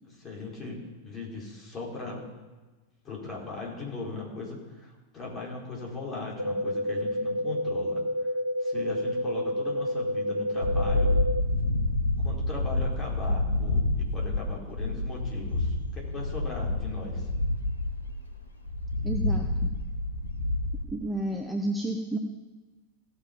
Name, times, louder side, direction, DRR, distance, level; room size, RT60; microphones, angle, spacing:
voice 1, 0.0-2.2 3.0-8.0 8.6-11.1 12.2-17.3, left 3 dB, 25° left, -3 dB, 4.6 m, -39 dB
sound 1, 6.4-11.4, equal, 85° right, 0.5 m, -29 dB
sound 2, 10.6-20.8, left 2 dB, 80° left, 1.4 m, -28 dB
voice 2, 19.0-19.7 20.9-22.2, right 1 dB, 5° right, 2 dB, 1.0 m, -31 dB
17.0 x 7.0 x 5.4 m, 1.2 s
figure-of-eight pair, 90°, 0 cm